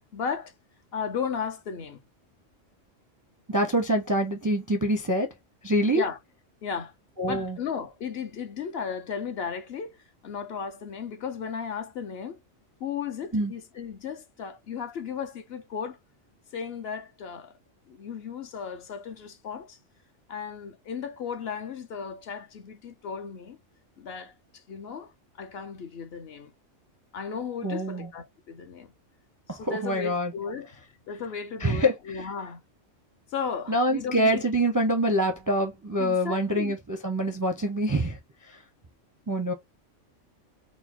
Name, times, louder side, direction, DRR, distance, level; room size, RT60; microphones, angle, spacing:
voice 1, 0.1-0.5 0.9-2.0 5.9-6.2 6.6-6.9 7.3-10.0 10.2-12.4 12.8-16.0 16.5-17.5 17.9-19.8 20.3-23.6 24.0-24.3 24.7-25.1 25.4-26.5 27.1-28.9 29.5-30.7 31.1-32.6 33.3-34.5 36.0-36.8, left 6 dB, 60° left, 0.8 m, -35 dB
voice 2, 3.5-5.3 5.6-6.0 7.2-7.6 13.3-13.5 27.6-28.1 29.6-30.3 31.6-31.9 33.7-38.2 39.3-39.5, equal, 25° right, 0.4 m, -25 dB
4.0 x 2.0 x 4.4 m
omnidirectional pair, 1.3 m